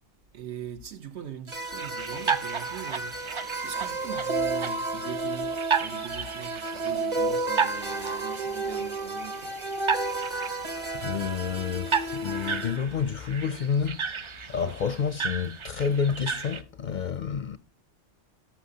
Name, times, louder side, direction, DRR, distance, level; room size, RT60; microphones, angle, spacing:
voice 1, 0.3-3.2 3.6-9.5 14.6-14.8, right 9 dB, 75° right, 1.2 m, -41 dB
sound 1, 1.5-12.8, right 2 dB, 25° right, 1.1 m, -32 dB
sound 2, 1.8-16.6, right 6 dB, 45° right, 0.4 m, -34 dB
voice 2, 11.0-14.0 14.5-17.6, left 7 dB, 55° left, 0.6 m, -29 dB
13.5 x 5.8 x 2.8 m
omnidirectional pair, 1.2 m